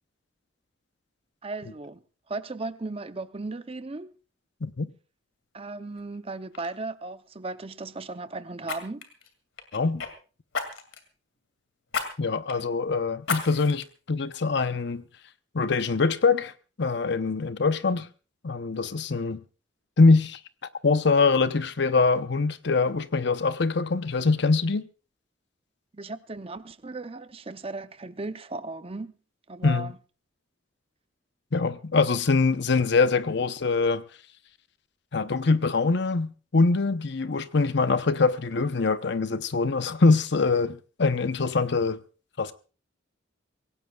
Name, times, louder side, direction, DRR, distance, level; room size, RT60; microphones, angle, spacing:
voice 1, 1.4-2.0 2.3-4.1 5.5-9.0 12.6-12.7 25.9-29.1 29.5-30.0, right 3 dB, 30° right, 0.6 m, -36 dB
Fire, 6.0-6.2 6.5-6.7 8.6-10.1 10.5-11.1 11.9-12.1 12.5-12.6 13.2-13.8 14.4-14.5, left 5 dB, 75° left, 2.4 m, -33 dB
voice 2, 9.7-10.0 12.2-15.0 15.5-16.5 16.8-18.1 18.4-19.4 20.0-20.4 20.8-24.9 29.6-29.9 31.5-34.0 35.1-42.0 42.4-42.5, left 4 dB, 60° left, 0.8 m, -23 dB
24.0 x 17.0 x 2.4 m
head